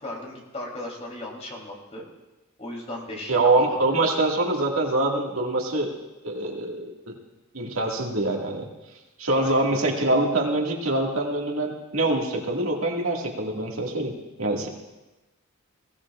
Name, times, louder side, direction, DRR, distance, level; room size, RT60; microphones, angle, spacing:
voice 1, 0.0-2.0 2.6-4.0 9.3-10.0, left 1 dB, 30° left, -2 dB, 3.3 m, -37 dB
voice 2, 3.3-5.9 6.2-6.9 7.5-8.7 9.2-14.1 14.4-14.7, right 2 dB, 75° right, -1 dB, 2.0 m, -24 dB
21.0 x 16.0 x 2.5 m, 1.1 s
head